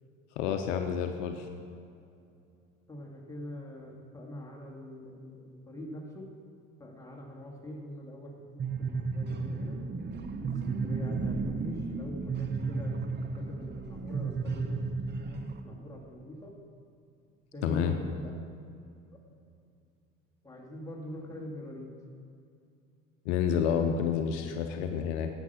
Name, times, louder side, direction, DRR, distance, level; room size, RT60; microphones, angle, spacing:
voice 1, 0.4-1.4 17.6-18.0 23.3-25.3, left 7 dB, 70° left, 6 dB, 0.8 m, -29 dB
voice 2, 2.9-6.3 6.8-9.8 10.4-16.5 17.5-18.3 20.4-21.9, equal, 10° left, -2 dB, 2.1 m, -43 dB
sound 1, 8.6-15.6, right 4 dB, 30° right, 0.8 m, -33 dB
9.6 x 7.1 x 5.7 m, 2.5 s
hypercardioid pair, 70°, 37 cm